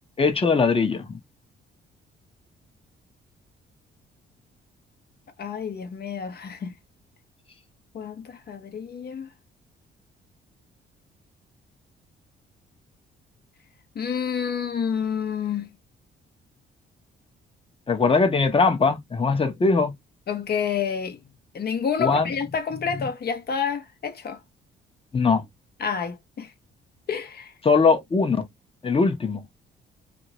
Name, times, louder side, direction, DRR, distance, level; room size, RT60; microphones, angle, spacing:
voice 1, 0.2-1.2 17.9-19.9 22.0-22.3 22.9-23.1 25.1-25.4 27.6-28.5 28.8-29.5, left 4 dB, 30° left, 0.9 m, -21 dB
voice 2, 5.4-6.7 7.9-9.3 13.9-15.8 20.3-24.4 25.8-26.5 27.1-27.5, left 7 dB, 50° left, 0.9 m, -29 dB
2.8 x 2.6 x 2.8 m
cardioid pair, 90°, 20 cm